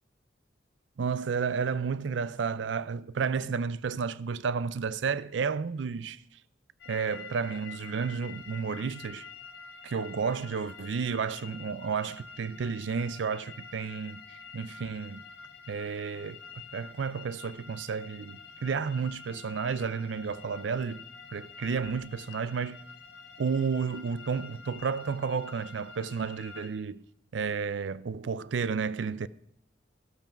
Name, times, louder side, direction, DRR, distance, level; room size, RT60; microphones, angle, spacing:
voice 1, 1.0-6.2 6.9-9.2 9.8-15.2 15.7-16.4 16.7-21.0 21.3-22.8 23.4-27.0 27.3-29.3, right 5 dB, 85° right, 0.4 m, -32 dB
sound 1, 6.8-26.7, left 6 dB, 70° left, 1.8 m, -48 dB
12.5 x 8.9 x 5.8 m
head